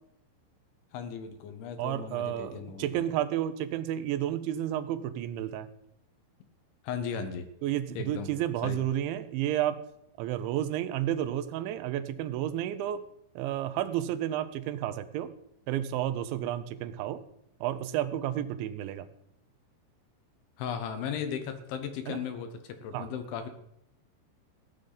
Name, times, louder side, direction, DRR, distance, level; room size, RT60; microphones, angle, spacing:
voice 1, 0.9-3.0 6.8-7.5 7.9-8.3 8.6-8.8 20.6-23.5, left 7 dB, 75° left, 8 dB, 3.4 m, -36 dB
voice 2, 1.8-5.7 7.6-9.8 10.2-13.0 13.4-15.3 15.7-17.2 17.6-19.1 22.1-22.2 22.9-23.1, right 12 dB, 75° right, 12 dB, 2.9 m, -31 dB
16.0 x 12.0 x 4.0 m, 0.78 s
omnidirectional pair, 5.8 m